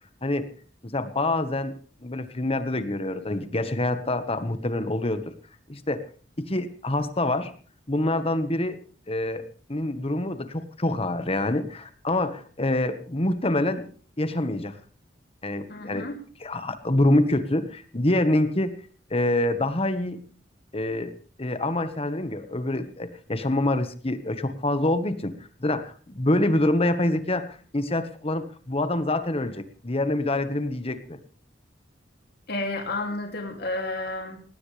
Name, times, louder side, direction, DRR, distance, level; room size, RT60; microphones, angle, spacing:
voice 1, 0.8-1.7 2.0-5.3 5.7-6.0 6.4-7.5 7.9-8.8 9.1-9.4 9.7-13.9 14.2-14.8 15.4-16.1 16.4-18.8 19.1-20.2 20.7-21.1 21.4-25.3 25.6-31.2, left 1 dB, 35° left, 10 dB, 1.4 m, -26 dB
voice 2, 15.7-16.2 32.5-34.4, left 2 dB, 60° left, 3 dB, 2.8 m, -31 dB
19.5 x 17.5 x 3.4 m, 0.40 s
head